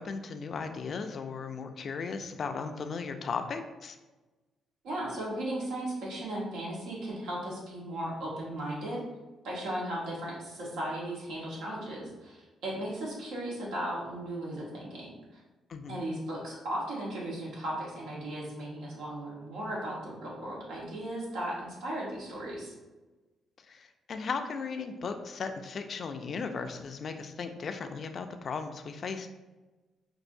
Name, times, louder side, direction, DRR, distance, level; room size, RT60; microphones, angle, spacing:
voice 1, 0.0-4.0 15.7-16.0 23.7-29.3, left 5 dB, 50° left, 6 dB, 0.4 m, -36 dB
voice 2, 4.8-9.0 9.4-15.4 15.9-22.7, right 1 dB, 85° right, -4 dB, 1.3 m, -36 dB
5.3 x 2.6 x 2.6 m, 1.2 s
cardioid pair, 90°, 0 cm